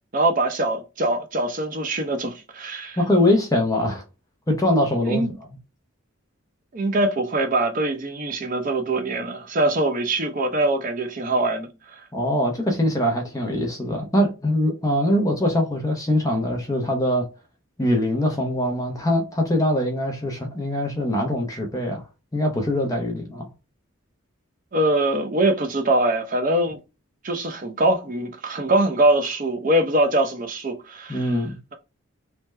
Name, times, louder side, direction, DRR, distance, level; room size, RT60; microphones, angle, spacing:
voice 1, 0.1-3.0 5.0-5.3 6.7-12.0 24.7-26.8 27.2-31.4, right 1 dB, 40° right, 0.6 m, -23 dB
voice 2, 3.0-4.0 4.5-5.2 12.1-17.3 17.8-22.0 22.3-23.5 31.1-31.6, left 1 dB, 15° left, 0.6 m, -22 dB
3.3 x 2.1 x 3.2 m
head